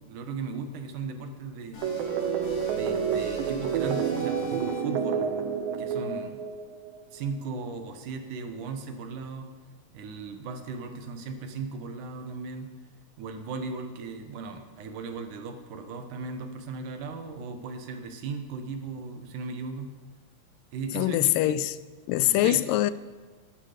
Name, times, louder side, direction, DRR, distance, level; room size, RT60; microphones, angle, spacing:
voice 1, 0.0-1.8 2.7-6.4 7.1-9.5 9.9-12.7 13.2-19.9 20.7-21.6 22.2-22.7, right 4 dB, 70° right, 6 dB, 2.5 m, -37 dB
sound 1, 1.7-5.1, left 1 dB, 45° left, 3.5 m, -41 dB
sound 2, 1.8-7.0, right 7 dB, 90° right, 2.5 m, -29 dB
voice 2, 21.0-21.7 22.1-22.9, left 15 dB, 85° left, 16 dB, 2.2 m, -23 dB
16.0 x 11.0 x 5.0 m, 1.4 s
omnidirectional pair, 3.9 m